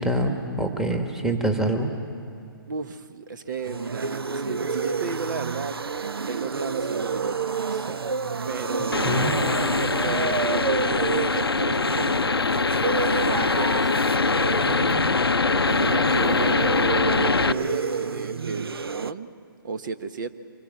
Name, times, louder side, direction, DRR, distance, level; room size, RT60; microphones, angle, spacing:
voice 1, 0.0-1.9 9.0-9.3, right 1 dB, 5° right, 4 dB, 1.6 m, -25 dB
voice 2, 2.7-5.8 6.3-8.0 8.4-9.4 10.0-12.5 13.0-14.2 14.6-14.9 15.7-19.3 19.6-20.4, right 5 dB, 55° right, 11 dB, 1.2 m, -33 dB
sound 1, 3.5-19.1, right 5 dB, 80° right, 0.6 m, -29 dB
sound 2, 8.9-17.5, left 4 dB, 85° left, 0.6 m, -23 dB
25.0 x 20.5 x 7.6 m, 2.4 s
figure-of-eight pair, 135°, 12 cm